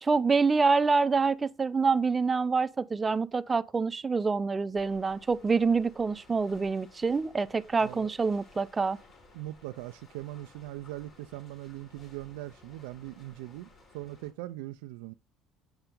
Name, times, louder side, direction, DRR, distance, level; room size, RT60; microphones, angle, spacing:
voice 1, 0.0-9.0, right 4 dB, 25° right, 0.5 m, -26 dB
sound 1, 4.8-14.3, left 3 dB, 55° left, 4.3 m, -57 dB
voice 2, 9.3-13.7 13.9-15.1, right 16 dB, 85° right, 0.3 m, -40 dB
7.9 x 5.8 x 3.7 m
supercardioid pair, 80°, 0 cm